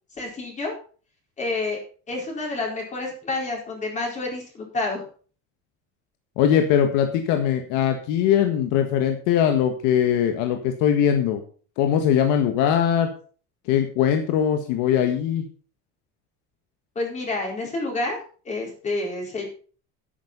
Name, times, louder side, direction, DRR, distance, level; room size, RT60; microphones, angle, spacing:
voice 1, 0.2-0.7 1.4-1.8 2.1-5.0 16.9-18.2 18.4-19.4, left 2 dB, 20° left, 0 dB, 4.4 m, -28 dB
voice 2, 6.4-11.4 11.8-13.1 13.7-15.5, left 9 dB, 70° left, 5 dB, 1.7 m, -21 dB
10.5 x 9.6 x 5.6 m, 0.41 s
cardioid pair, 175°, 32 cm